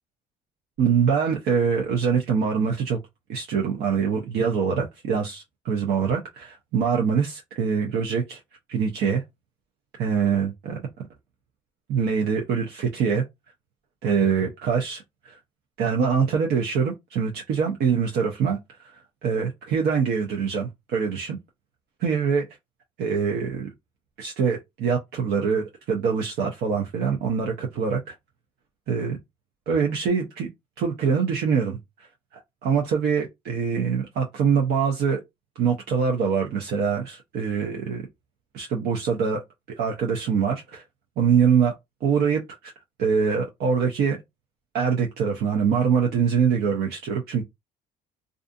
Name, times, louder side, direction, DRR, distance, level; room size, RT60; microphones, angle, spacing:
voice 1, 0.8-3.0 3.3-8.4 8.7-9.2 10.0-10.8 11.9-13.2 14.0-15.4 15.8-21.4 22.0-22.5 23.0-23.7 24.2-28.0 28.9-29.2 29.7-30.5 30.8-31.8 32.3-35.2 35.6-38.1 38.5-39.4 39.8-40.8 41.2-41.7 42.0-42.7 43.0-44.2 44.7-47.4, right 6 dB, 75° right, 0.6 m, -24 dB
2.5 x 2.4 x 2.5 m
cardioid pair, 110°, 17 cm